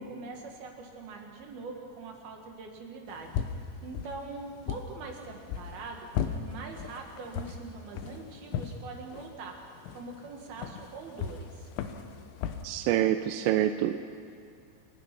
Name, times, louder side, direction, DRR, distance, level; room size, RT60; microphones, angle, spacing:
voice 1, 0.1-3.4 3.8-6.1 6.4-11.7, right 4 dB, 60° right, 2 dB, 3.2 m, -43 dB
sound 1, 3.1-12.6, left 8 dB, 90° left, 3.6 m, -38 dB
voice 2, 12.6-14.0, right 12 dB, 80° right, 8 dB, 2.8 m, -26 dB
29.0 x 17.5 x 6.0 m, 2.3 s
omnidirectional pair, 5.5 m